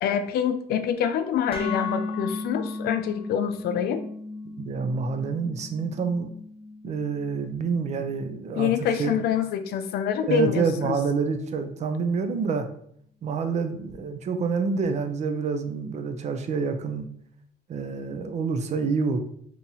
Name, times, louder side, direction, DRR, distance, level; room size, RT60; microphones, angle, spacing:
voice 1, 0.0-4.0 8.6-11.0, left 9 dB, 70° left, 8 dB, 0.4 m, -26 dB
sound 1, 1.5-9.6, left 3 dB, 35° left, 0.8 m, -36 dB
voice 2, 4.4-6.3 6.8-8.7 9.0-9.1 10.2-12.7 13.2-17.1 17.7-19.2, right 5 dB, 40° right, 7 dB, 0.5 m, -27 dB
3.8 x 2.9 x 2.7 m, 0.66 s
cardioid pair, 110°, 17 cm